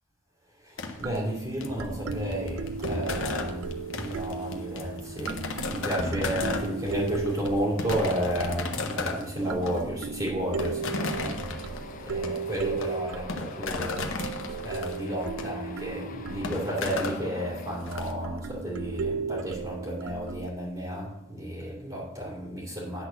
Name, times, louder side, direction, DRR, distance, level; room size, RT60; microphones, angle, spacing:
voice 1, 0.6-11.3 12.0-14.1 14.6-23.0, equal, 25° right, -6 dB, 2.3 m, -32 dB
sound 1, 0.8-18.1, left 3 dB, 60° left, 1.1 m, -35 dB
sound 2, 1.0-9.1 9.5-20.5, right 5 dB, 70° right, 0.4 m, -36 dB
sound 3, 10.8-17.8, left 4 dB, 40° left, 0.6 m, -45 dB
9.9 x 4.2 x 6.8 m, 0.95 s
head